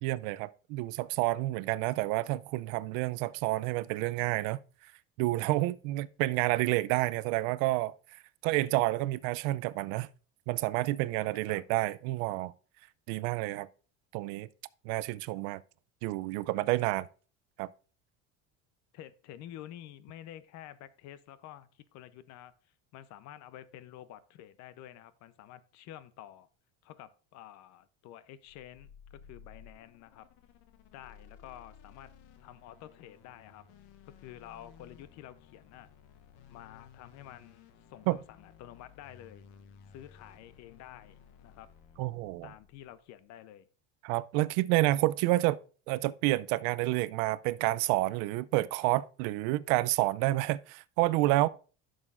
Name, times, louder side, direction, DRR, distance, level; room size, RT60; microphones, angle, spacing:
voice 1, 0.0-4.6 5.2-10.1 10.5-12.5 13.1-13.7 14.1-14.5 14.9-15.6 16.0-17.1 17.6-17.7 38.1-38.2 42.0-42.5 44.0-45.6 45.9-51.5, right 18 dB, 75° right, 0.5 m, -29 dB
voice 2, 18.9-22.5 22.9-26.5 26.8-30.3 30.9-32.1 32.4-33.7 34.2-35.9 36.5-39.4 39.9-41.7 42.4-43.7, left 12 dB, 60° left, 0.7 m, -50 dB
sound 1, 28.4-43.0, left 7 dB, 75° left, 1.0 m, -57 dB
11.0 x 6.4 x 2.5 m
cardioid pair, 130°, 32 cm